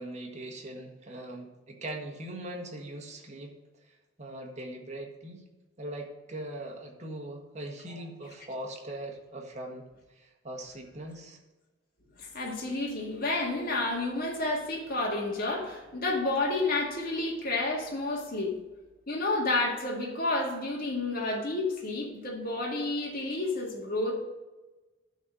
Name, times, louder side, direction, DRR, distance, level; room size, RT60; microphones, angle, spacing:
voice 1, 0.0-3.5 4.2-5.4 5.8-11.4, right 1 dB, 35° right, 1 dB, 1.7 m, -40 dB
voice 2, 12.2-18.5 19.1-24.1, left 2 dB, 50° left, -2 dB, 1.8 m, -30 dB
12.0 x 4.3 x 6.3 m, 1.1 s
head